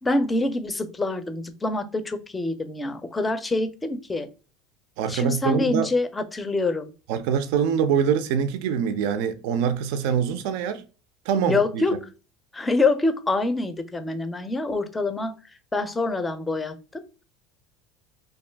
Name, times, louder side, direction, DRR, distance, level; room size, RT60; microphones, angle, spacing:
voice 1, 0.0-4.3 5.1-6.9 11.4-11.9 12.5-15.3 15.7-17.0, left 2 dB, 15° left, 0.4 m, -25 dB
voice 2, 5.0-5.9 7.1-10.8 11.3-12.0, right 7 dB, 75° right, 0.3 m, -24 dB
2.5 x 2.2 x 3.2 m
supercardioid pair, 125°, 0 cm